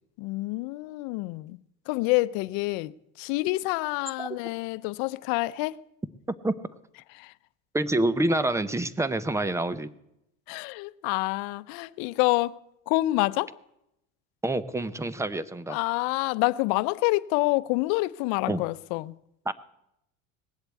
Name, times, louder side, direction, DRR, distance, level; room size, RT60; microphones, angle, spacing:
voice 1, 0.2-1.6 1.9-5.8 7.1-7.3 10.5-12.6 12.9-13.6 15.7-19.2, left 20 dB, 75° left, 0.7 m, -27 dB
voice 2, 7.7-9.9 14.4-15.8 18.5-18.6 19.5-19.6, right 2 dB, 10° right, 0.7 m, -27 dB
19.5 x 8.1 x 8.2 m
cardioid pair, 130°, 34 cm